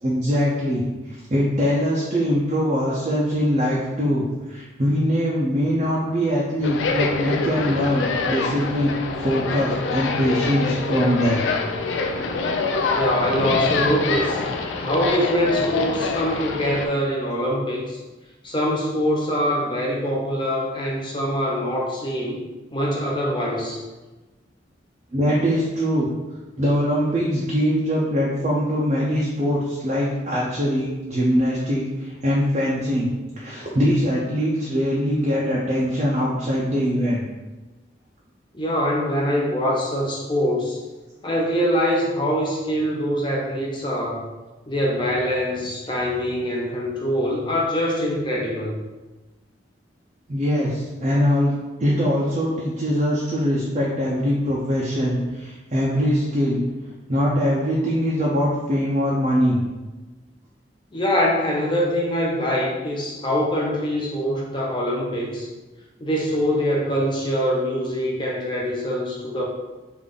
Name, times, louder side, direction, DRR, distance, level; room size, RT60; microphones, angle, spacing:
voice 1, 0.0-0.8 1.3-9.0 9.2-11.4 11.8-12.1 25.1-26.1 26.6-37.2 50.3-51.5 51.8-56.6 57.1-59.6, equal, 35° right, -5 dB, 0.5 m, -22 dB
sound 1, 6.6-16.9, left 4 dB, 85° left, 0.4 m, -25 dB
voice 2, 12.9-14.4 14.8-18.0 18.4-22.4 22.7-23.8 38.5-40.8 41.2-44.2 44.7-48.8 60.9-65.5 66.0-69.4, equal, 25° left, -3 dB, 0.6 m, -24 dB
3.4 x 2.5 x 3.6 m, 1.2 s
head